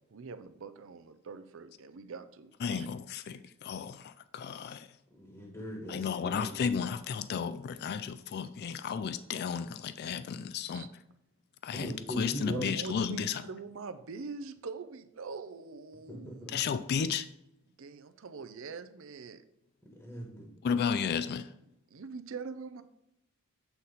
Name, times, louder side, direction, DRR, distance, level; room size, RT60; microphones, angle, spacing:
voice 1, 0.1-2.9 10.7-10.9 12.5-16.6 17.8-19.4 21.9-22.8, right 4 dB, 65° right, 0.5 m, -43 dB
voice 2, 2.6-4.9 5.9-10.9 11.6-13.4 16.5-17.3 20.6-21.5, left 6 dB, 50° left, 0.3 m, -33 dB
voice 3, 5.1-6.5 11.7-13.0 16.1-16.5 20.0-20.5, right 1 dB, 10° left, 1.3 m, -39 dB
8.1 x 4.1 x 4.1 m
head